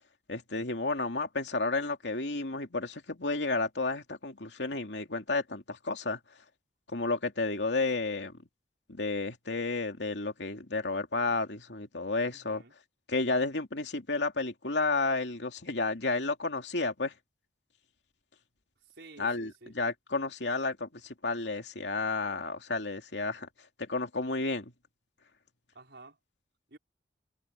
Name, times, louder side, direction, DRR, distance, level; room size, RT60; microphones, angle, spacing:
voice 1, 0.3-6.2 6.9-8.3 8.9-12.6 13.1-17.1 19.2-23.5 23.8-24.7, left 3 dB, 80° left, 2.7 m, -31 dB
voice 2, 12.3-12.7 18.8-19.7 25.7-26.2 26.7-26.8, right 2 dB, 75° right, 5.2 m, -52 dB
head